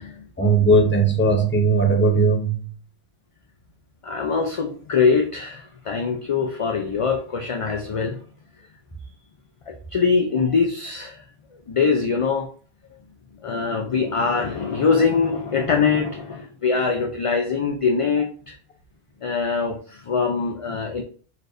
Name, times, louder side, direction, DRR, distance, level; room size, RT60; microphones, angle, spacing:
voice 1, 0.4-2.6, right 3 dB, 15° left, 0.7 m, -18 dB
voice 2, 4.0-8.2 9.7-11.2 11.7-12.5 13.4-18.6 19.2-21.0, left 5 dB, 50° left, 0.4 m, -23 dB
4.1 x 3.2 x 2.5 m
omnidirectional pair, 1.0 m